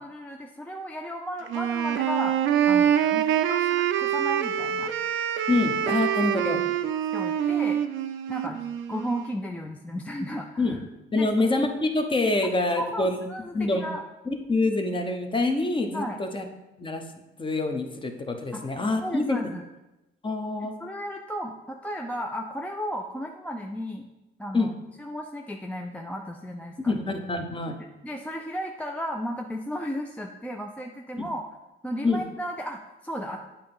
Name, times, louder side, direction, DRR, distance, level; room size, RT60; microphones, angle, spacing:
voice 1, 0.0-2.4 2.7-4.9 5.5-5.6 6.4-6.7 7.1-7.8 8.3-8.6 8.9-10.8 11.1-11.3 12.4-12.5 12.8-14.0 15.9-16.2 18.5-18.7 19.0-19.6 20.6-24.1 24.4-24.7 25.0-26.9 27.7-27.8 28.0-31.5 31.8-33.4, equal, 5° left, 1 dB, 0.5 m, -34 dB
Wind instrument woodwind instrument, 1.5-9.4, right 9 dB, 80° right, 0.5 m, -25 dB
voice 2, 5.5-6.6 10.6-10.8 11.1-13.2 13.5-13.8 14.3-16.4 16.8-17.0 17.4-19.4 20.2-20.7 24.5-24.7 26.8-27.8 31.2-31.3 32.0-32.2, left 2 dB, 25° left, 5 dB, 0.9 m, -26 dB
8.6 x 2.9 x 5.4 m, 1.0 s
cardioid pair, 90°, 20 cm